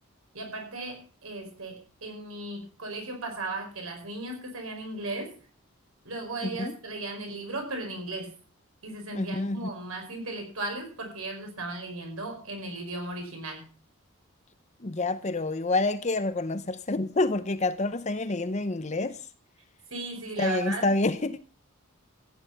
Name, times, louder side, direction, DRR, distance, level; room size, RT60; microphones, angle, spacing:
voice 1, 0.3-5.4 6.0-8.3 8.8-13.6 19.9-20.9, right 2 dB, 85° right, 5.2 m, -36 dB
voice 2, 9.1-9.6 14.8-19.2 20.4-21.4, left 2 dB, 35° left, 0.7 m, -28 dB
15.0 x 10.0 x 5.8 m
head